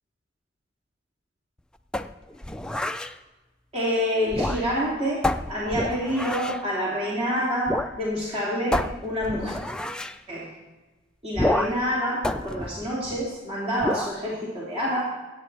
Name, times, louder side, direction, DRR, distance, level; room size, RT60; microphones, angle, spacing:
sound 1, 1.9-3.1 4.2-4.9 5.2-6.6 7.7-8.0 8.2-8.3 8.7-10.2 11.3-11.9 12.2-13.4 13.8-14.2, left 1 dB, 5° left, 0.4 m, -28 dB
voice 1, 3.7-9.5 10.3-10.5 11.2-15.0, equal, 35° right, -6 dB, 2.9 m, -27 dB
22.0 x 9.0 x 3.4 m, 1.2 s
head